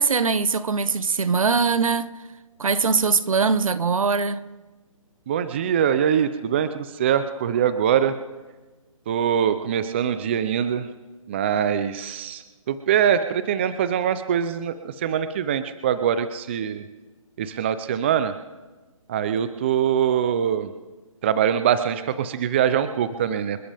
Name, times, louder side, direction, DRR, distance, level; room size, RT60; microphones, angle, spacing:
voice 1, 0.0-2.1 2.6-4.4, right 5 dB, 75° right, 1.2 m, -21 dB
voice 2, 5.3-8.1 9.1-10.9 11.3-16.8 17.4-18.3 19.1-20.7 21.2-23.6, right 9 dB, 20° right, 0.5 m, -23 dB
28.5 x 13.0 x 3.5 m
hypercardioid pair, 160°, 18 cm